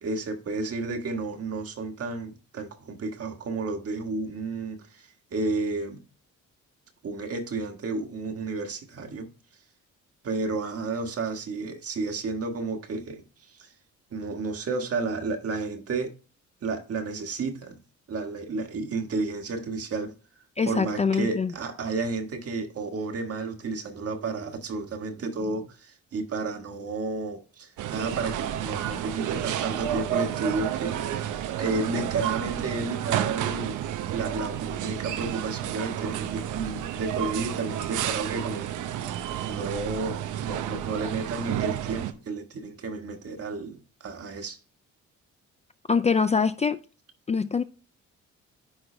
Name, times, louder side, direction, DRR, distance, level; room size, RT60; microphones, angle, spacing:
voice 1, 0.0-6.0 7.0-9.3 10.2-13.7 14.1-16.1 16.6-17.8 18.1-20.1 20.7-33.8 34.1-38.8 39.4-44.6, right 3 dB, 50° right, 1.5 m, -32 dB
voice 2, 20.6-21.5 45.9-46.8 47.3-47.6, left 5 dB, 20° left, 0.4 m, -24 dB
sound 1, 27.8-42.1, right 11 dB, 85° right, 0.8 m, -31 dB
10.5 x 3.9 x 3.3 m
cardioid pair, 90°, 30 cm